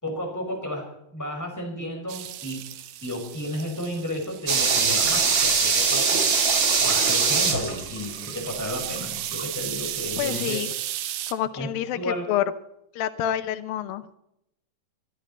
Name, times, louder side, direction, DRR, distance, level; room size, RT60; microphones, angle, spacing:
voice 1, 0.0-2.7 3.0-6.2 6.8-10.6 11.6-12.3, left 1 dB, 5° left, 0 dB, 5.3 m, -33 dB
sound 1, 2.1-5.1 6.9-11.3, right 12 dB, 75° right, 2.7 m, -35 dB
sound 2, 4.5-9.4 9.7-9.8, right 5 dB, 40° right, 2.0 m, -22 dB
voice 2, 10.2-10.7 11.3-12.0 12.3-12.4 12.9-14.1, left 11 dB, 90° left, 11 dB, 2.7 m, -27 dB
23.0 x 13.0 x 4.3 m, 0.80 s
omnidirectional pair, 4.0 m